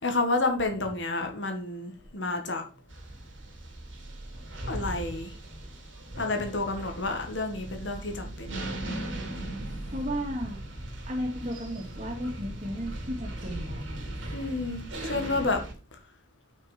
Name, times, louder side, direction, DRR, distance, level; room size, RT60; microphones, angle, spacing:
voice 1, 0.0-2.6 4.7-5.3 6.2-8.5 14.1-15.6, left 2 dB, 65° left, 5 dB, 1.9 m, -30 dB
sound 1, 2.9-15.7, right 1 dB, 80° right, 3.0 m, -38 dB
voice 2, 9.9-10.6 11.1-13.8, equal, 35° right, 1 dB, 2.6 m, -34 dB
6.6 x 6.0 x 5.3 m, 0.37 s
head